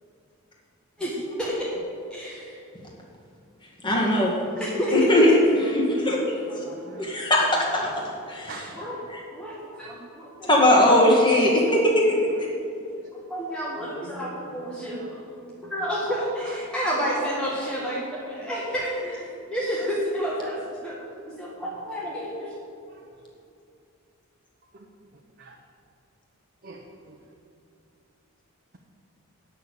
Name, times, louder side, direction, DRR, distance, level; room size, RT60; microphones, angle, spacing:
voice 1, 1.0-1.7 2.1-2.6 4.6-5.1 6.0-7.1 7.8-7.9 8.7-9.0 9.3-10.6 13.3-15.2 15.6-21.0 21.3-22.5, equal, 5° left, -7 dB, 1.5 m, -30 dB
voice 2, 3.8-4.3 4.9-5.4 5.7-6.2 7.0-7.9 8.3-8.5 9.1-9.2 10.5-12.3, left 1 dB, 20° left, -3 dB, 2.0 m, -19 dB
voice 3, 6.9-7.2 8.5-8.8 10.7-10.8 14.0-14.3 15.0-15.1 16.4-16.5 24.7-24.8 25.4-25.5 26.6-27.1, right 3 dB, 45° right, 0 dB, 0.9 m, -43 dB
9.5 x 6.7 x 8.3 m, 2.6 s
head